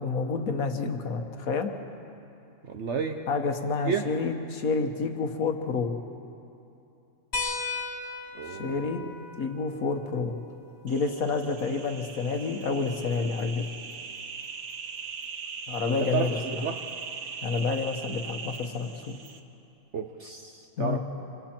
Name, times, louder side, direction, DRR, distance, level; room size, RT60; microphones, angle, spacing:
voice 1, 0.0-1.7 3.3-5.9 8.5-9.0 9.4-10.3 10.8-13.7 15.7-16.4 17.4-19.2 20.8-21.0, left 4 dB, 80° left, 5 dB, 1.7 m, -29 dB
voice 2, 2.6-3.2 3.8-4.0 7.4-7.5 8.3-8.9 16.0-16.3 16.6-16.8 19.9-21.0, right 6 dB, 55° right, 5 dB, 1.1 m, -31 dB
sound 1, 7.3-12.4 13.9-14.0 15.7-15.8, left 3 dB, 50° left, 1.8 m, -38 dB
sound 2, 10.9-19.4, right 6 dB, 80° right, 1.5 m, -40 dB
26.5 x 26.0 x 4.5 m, 2.8 s
omnidirectional pair, 1.5 m